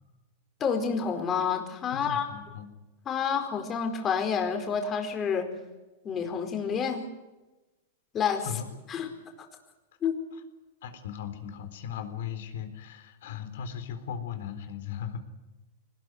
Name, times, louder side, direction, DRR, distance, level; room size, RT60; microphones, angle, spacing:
voice 1, 0.6-2.3 3.1-5.5 6.0-7.1 8.1-8.5 8.9-9.1 10.0-10.2, left 6 dB, 25° left, 5 dB, 4.6 m, -28 dB
voice 2, 1.9-2.7 8.4-8.7 10.8-15.2, left 8 dB, 75° left, 8 dB, 4.0 m, -37 dB
23.0 x 20.0 x 9.7 m, 1.1 s
hypercardioid pair, 130°, 0 cm